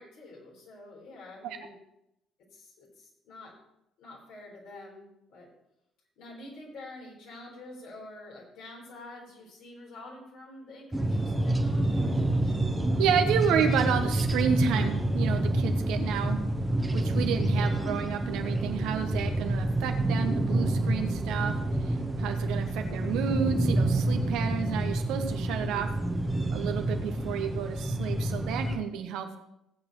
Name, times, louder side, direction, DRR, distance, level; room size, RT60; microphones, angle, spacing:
voice 1, 0.0-1.7 2.5-3.5 4.0-5.5 6.2-12.7 17.6-18.0 22.7-23.1, left 2 dB, 65° left, -3 dB, 4.2 m, -47 dB
sound 1, 10.9-28.8, right 1 dB, 15° right, 1.4 m, -28 dB
voice 2, 13.0-16.4 16.9-21.6 21.9-25.9 26.5-29.4, right 8 dB, 65° right, 6 dB, 1.2 m, -30 dB
17.0 x 8.4 x 3.2 m, 0.83 s
figure-of-eight pair, 50°, 0 cm